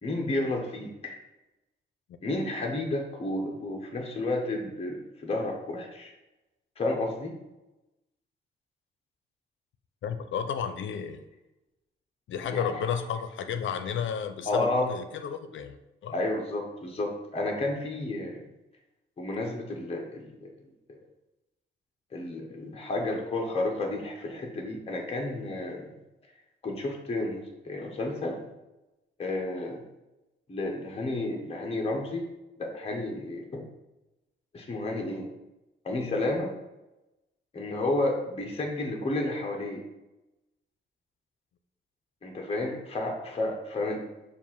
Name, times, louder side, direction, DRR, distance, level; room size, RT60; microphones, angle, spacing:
voice 1, 0.0-1.2 2.2-6.1 6.8-7.3 12.4-12.8 14.4-14.9 16.1-18.4 19.2-20.5 20.9-21.0 22.1-25.9 26.6-28.4 29.2-29.8 30.5-32.2 32.6-33.7 34.5-35.3 35.8-36.5 37.5-39.8 42.2-44.0, left 2 dB, 30° left, 1 dB, 1.0 m, -31 dB
voice 2, 10.0-11.2 12.3-16.2, left 7 dB, 90° left, 9 dB, 0.6 m, -32 dB
7.1 x 2.5 x 5.7 m, 0.98 s
wide cardioid pair, 130°, 19 cm